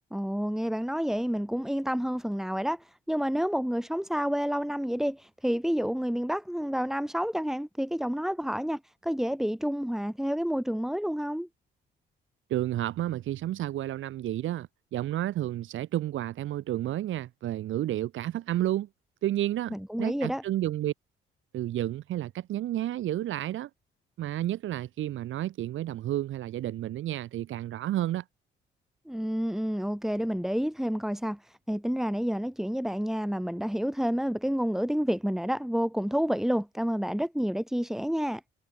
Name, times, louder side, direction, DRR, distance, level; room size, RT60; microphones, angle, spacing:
voice 1, 0.1-11.5 19.7-20.4 29.1-38.4, equal, ahead, 6.2 m, -29 dB
voice 2, 12.5-18.9 19.2-20.9 21.5-23.7 24.2-28.2, right 13 dB, 80° right, 2.9 m, -31 dB
cardioid pair, 90°, 20 cm